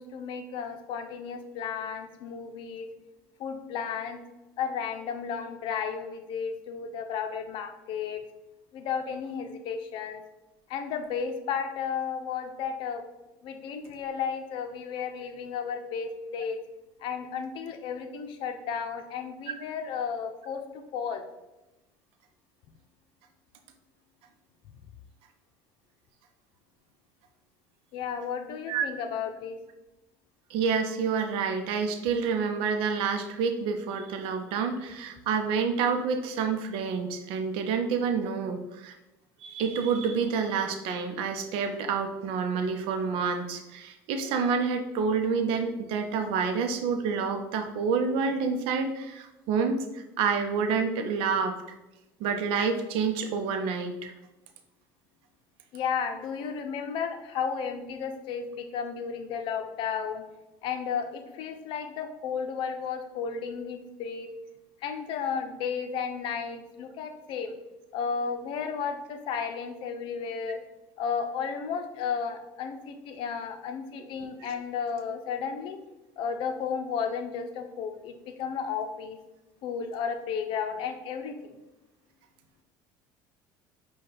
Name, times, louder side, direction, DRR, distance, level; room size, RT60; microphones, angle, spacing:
voice 1, 0.0-2.9 3.4-4.2 4.6-8.2 8.7-10.2 10.7-13.0 13.4-16.6 17.0-21.2 27.9-29.6 55.7-60.2 60.6-64.3 64.8-67.5 67.9-70.6 71.0-75.8 76.2-78.1 78.4-79.2 79.6-81.5, left 6 dB, 60° left, 6 dB, 0.6 m, -33 dB
voice 2, 30.5-38.9 39.4-49.8 50.2-51.5 52.2-54.1, right 5 dB, 70° right, 6 dB, 0.6 m, -28 dB
5.3 x 2.3 x 4.1 m, 0.98 s
supercardioid pair, 105°, 9 cm